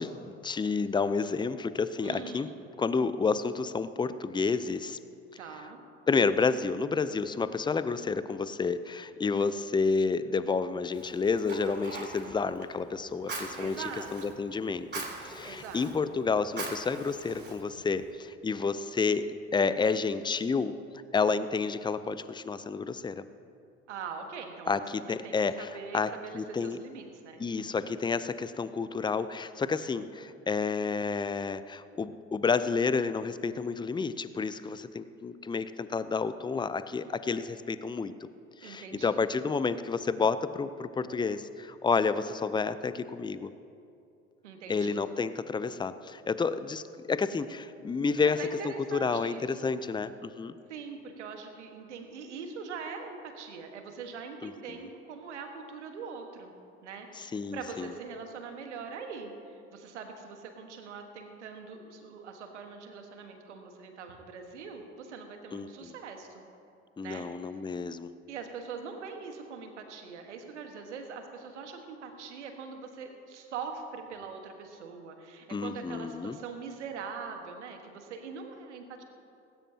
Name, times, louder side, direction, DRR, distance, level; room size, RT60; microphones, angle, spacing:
voice 1, 0.0-2.5 2.8-5.0 6.1-13.8 14.1-20.7 21.1-23.2 24.7-25.7 25.9-26.1 26.3-26.8 27.4-38.1 38.6-43.5 44.7-50.6 54.4-54.5 57.2-57.9 65.5-65.9 67.0-68.1 75.5-76.4, left 4 dB, 15° left, 14 dB, 0.6 m, -30 dB
voice 2, 2.0-2.6 5.4-5.8 13.6-14.4 15.4-16.1 23.9-28.0 38.6-39.2 44.4-45.0 48.2-49.8 50.7-56.5 56.8-66.4 67.0-67.5 68.3-79.0, right 5 dB, 80° right, 5 dB, 1.6 m, -42 dB
Fire, 10.9-18.1, right 3 dB, 30° right, 3.6 m, -43 dB
18.5 x 17.0 x 2.9 m, 2.6 s
figure-of-eight pair, 60°, 35 cm